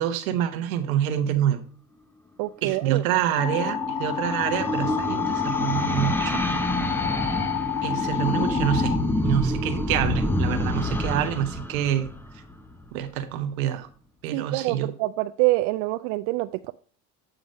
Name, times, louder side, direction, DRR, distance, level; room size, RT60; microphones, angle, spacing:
voice 1, 0.0-1.6 2.6-6.4 7.8-8.9 9.2-12.1 12.9-13.9 14.2-14.9, right 11 dB, 85° right, 8 dB, 1.1 m, -26 dB
voice 2, 2.4-3.0 14.3-16.7, right 19 dB, 70° right, 9 dB, 0.5 m, -26 dB
sound 1, 3.3-12.8, left 1 dB, 5° left, 0.8 m, -28 dB
sound 2, 3.4-9.0, left 7 dB, 65° left, 3.3 m, -29 dB
7.8 x 4.0 x 5.1 m, 0.42 s
supercardioid pair, 95°, 41 cm